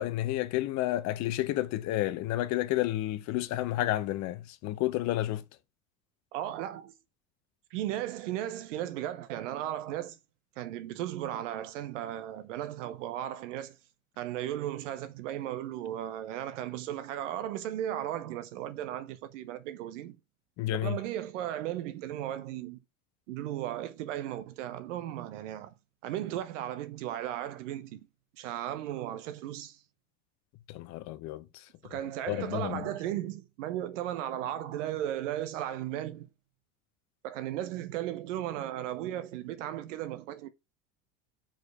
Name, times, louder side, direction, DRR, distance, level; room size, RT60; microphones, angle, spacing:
voice 1, 0.0-5.4 20.6-21.0 30.7-31.6 32.3-32.9, left 15 dB, 45° left, 0.7 m, -31 dB
voice 2, 6.3-6.9 7.7-10.2 10.6-13.8 14.2-20.2 20.8-22.8 23.3-25.7 26.0-28.0 28.4-29.8 31.8-36.3 37.2-40.5, right 12 dB, 65° right, 1.0 m, -36 dB
4.8 x 4.5 x 4.8 m
hypercardioid pair, 80°, 40 cm